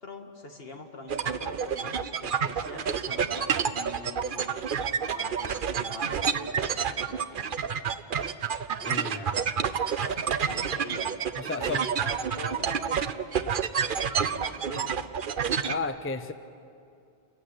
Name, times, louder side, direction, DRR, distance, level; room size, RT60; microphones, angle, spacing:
voice 1, 0.0-4.6 5.0-7.6 9.0-9.4 10.4-11.2 11.6-13.0 13.4-13.5 14.2-14.9, left 1 dB, 70° left, 3 dB, 2.3 m, -43 dB
sound 1, 1.1-15.8, right 7 dB, 60° right, 0.9 m, -29 dB
voice 2, 8.8-9.2 11.4-11.8 15.7-16.3, left 3 dB, 15° left, 10 dB, 0.7 m, -33 dB
28.5 x 15.5 x 9.6 m, 2.4 s
omnidirectional pair, 1.0 m